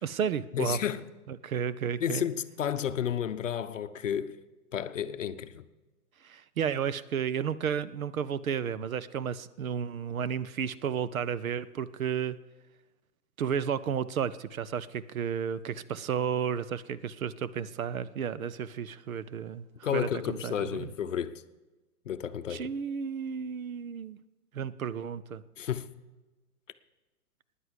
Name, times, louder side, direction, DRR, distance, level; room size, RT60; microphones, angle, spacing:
voice 1, 0.0-0.8 1.3-2.2 6.2-12.4 13.4-19.7 19.9-20.9 22.5-24.2 24.5-25.4, right 7 dB, 65° right, 0.7 m, -32 dB
voice 2, 0.5-1.0 2.0-4.3 4.7-5.6 19.8-21.4 22.1-22.7 25.6-25.9, left 9 dB, 55° left, 0.7 m, -31 dB
10.5 x 9.9 x 8.1 m
hypercardioid pair, 175°, 45 cm